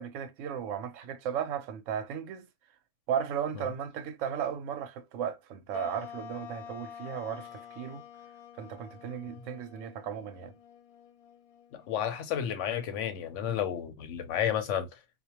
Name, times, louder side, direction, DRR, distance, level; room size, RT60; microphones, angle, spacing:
voice 1, 0.0-2.5 3.1-8.0 8.6-10.5, right 8 dB, 70° right, 0.9 m, -35 dB
sound 1, 5.7-12.4, left 7 dB, 85° left, 1.1 m, -48 dB
voice 2, 11.7-14.9, left 9 dB, 65° left, 0.8 m, -31 dB
2.3 x 2.2 x 2.8 m
omnidirectional pair, 1.5 m